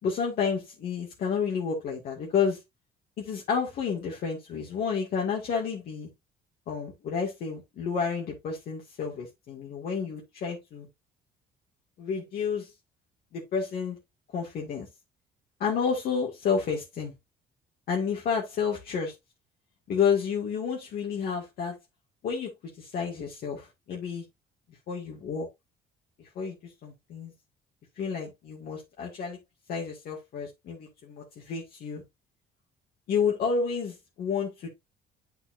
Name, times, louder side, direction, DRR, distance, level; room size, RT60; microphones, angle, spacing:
voice 1, 0.0-2.6 3.2-6.1 6.7-10.9 12.0-12.7 13.3-14.0 14.3-14.9 15.6-17.1 17.9-19.1 19.9-21.8 22.2-22.5 22.8-24.2 24.9-25.5 26.2-27.3 28.0-29.4 29.7-32.0 33.1-34.7, left 6 dB, 65° left, 2.1 m, -30 dB
8.5 x 5.9 x 2.6 m
cardioid pair, 110°, 17 cm